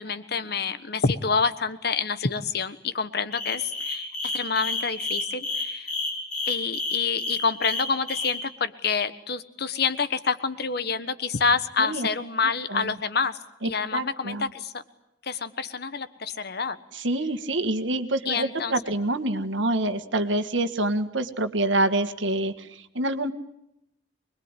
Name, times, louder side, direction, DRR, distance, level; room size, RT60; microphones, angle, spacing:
voice 1, 0.0-5.9 6.5-14.7 15.2-16.8 18.3-18.7, left 5 dB, 60° left, 12 dB, 1.3 m, -27 dB
sound 1, 3.3-8.3, left 3 dB, 40° left, 6.9 m, -29 dB
voice 2, 13.6-14.5 16.9-23.3, right 1 dB, 85° right, 8 dB, 1.8 m, -26 dB
25.0 x 21.5 x 9.8 m, 0.84 s
head